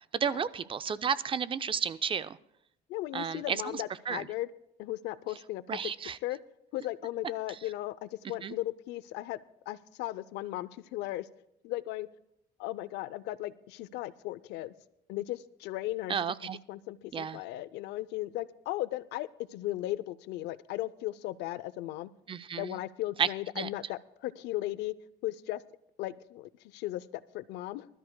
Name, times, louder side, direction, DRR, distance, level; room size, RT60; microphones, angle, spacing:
voice 1, 0.1-2.4 3.1-4.3 5.7-6.2 8.4-8.5 16.1-16.6 17.1-17.4 22.3-22.8 23.2-23.3 23.6-23.7, right 7 dB, 30° right, 15 dB, 0.4 m, -32 dB
voice 2, 2.9-4.5 4.8-5.8 6.2-6.4 6.7-9.4 9.7-11.3 11.6-12.1 12.6-14.7 15.1-16.2 16.7-22.1 22.6-24.9 25.2-25.6 26.0-27.9, left 16 dB, 85° left, 17 dB, 0.5 m, -36 dB
25.0 x 13.0 x 2.2 m, 0.79 s
cardioid pair, 110°, 17 cm